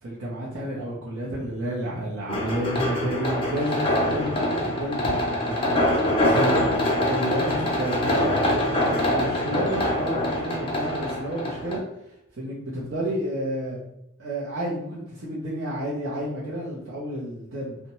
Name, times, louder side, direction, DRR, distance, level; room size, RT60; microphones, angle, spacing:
voice 1, 0.0-6.6 7.1-13.8 14.2-17.8, equal, 75° right, -8 dB, 0.7 m, -31 dB
sound 1, 2.3-11.8, left 1 dB, 25° left, 0.5 m, -24 dB
2.6 x 2.1 x 3.0 m, 0.82 s
head